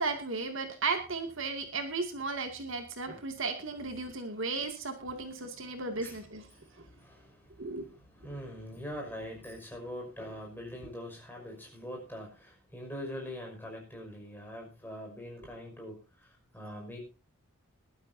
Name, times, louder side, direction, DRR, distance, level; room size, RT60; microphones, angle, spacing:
voice 1, 0.0-6.5 7.6-7.9, right 3 dB, 60° right, 5 dB, 2.3 m, -35 dB
voice 2, 5.6-6.2 6.5-17.0, equal, 10° left, 0 dB, 5.7 m, -43 dB
21.5 x 12.0 x 2.7 m, 0.31 s
head